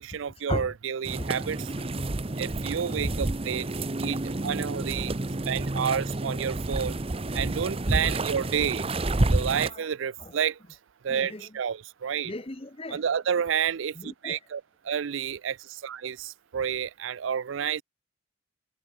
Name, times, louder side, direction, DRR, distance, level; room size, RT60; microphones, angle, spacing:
voice 1, 0.0-1.7 2.4-3.7 4.0-5.1 5.5-7.0 7.3-8.9 9.3-10.6 11.0-12.3 12.9-17.8, right 8 dB, 70° right, 0.4 m, -30 dB
sound 1, 1.0-9.7, right 2 dB, 30° right, 0.8 m, -29 dB
voice 2, 1.8-2.1 2.9-3.1 9.4-9.8 10.2-10.3 11.1-11.5 12.2-13.0 13.9-14.4, left 1 dB, 30° left, 1.1 m, -37 dB
head